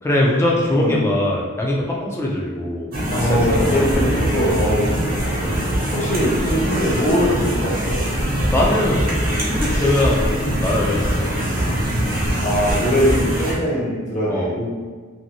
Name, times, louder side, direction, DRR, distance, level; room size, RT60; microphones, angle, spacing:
voice 1, 0.0-2.9 3.2-4.3 8.5-11.4 14.3-14.5, left 1 dB, 10° left, -3 dB, 0.3 m, -22 dB
sound 1, 2.9-13.5, right 1 dB, 45° right, 0.7 m, -22 dB
voice 2, 3.1-5.2 5.4-8.0 12.4-14.7, equal, 35° left, -5 dB, 0.7 m, -21 dB
2.7 x 2.6 x 2.8 m, 1.6 s
head